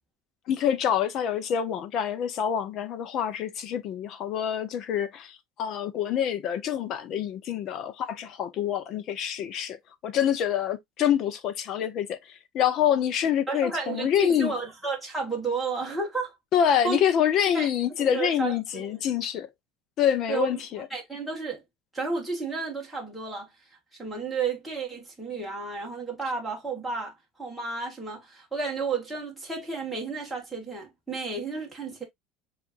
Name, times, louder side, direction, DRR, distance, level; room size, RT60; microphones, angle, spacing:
voice 1, 0.5-9.8 10.0-14.6 16.5-19.5 20.0-20.9, left 9 dB, 35° left, 0.6 m, -26 dB
voice 2, 13.5-16.4 16.8-17.0 17.5-17.7 18.0-18.9 20.3-20.5 20.7-21.6 21.9-23.5 24.0-32.0, right 4 dB, ahead, 1.3 m, -32 dB
7.4 x 2.5 x 2.5 m
cardioid pair, 180°, 0 cm